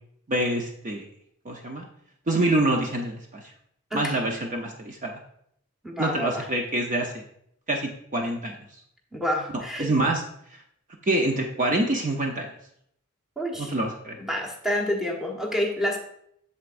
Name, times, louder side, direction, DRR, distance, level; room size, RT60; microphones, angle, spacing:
voice 1, 0.3-1.0 1.4-1.9 2.3-3.4 3.9-5.1 6.0-7.2 7.7-8.5 9.8-10.2 11.1-12.5 13.6-14.2, right 1 dB, 35° right, 2 dB, 0.7 m, -26 dB
voice 2, 5.8-6.5 9.1-9.9 13.4-13.7 14.2-16.0, left 1 dB, ahead, -1 dB, 1.2 m, -28 dB
8.0 x 7.0 x 2.5 m, 0.70 s
head